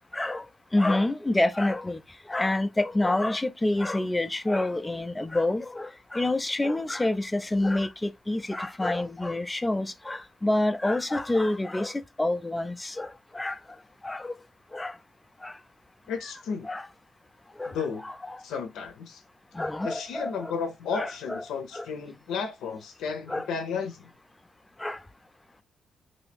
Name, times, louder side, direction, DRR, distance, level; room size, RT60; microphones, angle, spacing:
voice 1, 0.1-0.4 0.7-2.0 2.3-13.6 14.0-14.3 14.7-15.0 15.4-15.6 16.6-16.9 17.6-18.4 19.5-20.6 20.9-21.4 21.7-21.9 23.3-23.5 24.8-25.0, left 2 dB, 15° left, 0.4 m, -28 dB
voice 2, 16.1-16.7 17.7-18.0 18.4-19.2 19.8-24.1, left 5 dB, 85° left, 0.6 m, -33 dB
2.8 x 2.6 x 3.4 m
cardioid pair, 90°, 0 cm